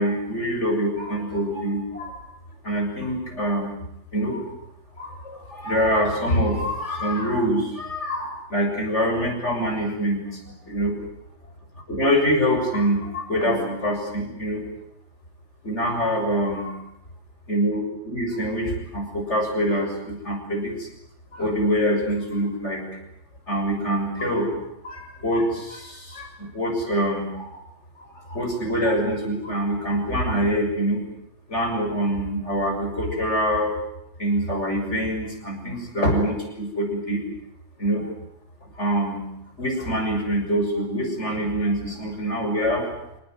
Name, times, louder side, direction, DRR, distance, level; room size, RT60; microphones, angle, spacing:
voice 1, 0.0-2.3 2.6-3.8 4.1-4.6 5.0-11.0 11.9-14.6 15.6-16.8 17.5-20.9 21.3-22.9 23.5-24.5 24.8-27.6 28.0-31.0 31.5-33.7 34.2-37.2 37.8-38.1 38.6-39.3 39.6-42.9, equal, 50° left, 2 dB, 7.3 m, -25 dB
27.0 x 18.5 x 9.4 m, 0.81 s
omnidirectional pair, 1.5 m